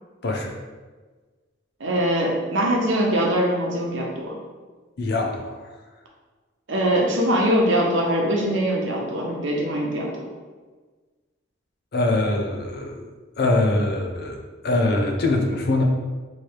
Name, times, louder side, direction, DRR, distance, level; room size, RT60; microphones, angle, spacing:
voice 1, 0.2-0.6 5.0-5.6 11.9-13.1 13.4-14.4 14.6-15.8, left 2 dB, 55° left, 2 dB, 0.6 m, -23 dB
voice 2, 1.8-4.3 6.7-10.3, equal, 70° right, -2 dB, 0.9 m, -22 dB
3.2 x 3.0 x 4.6 m, 1.3 s
head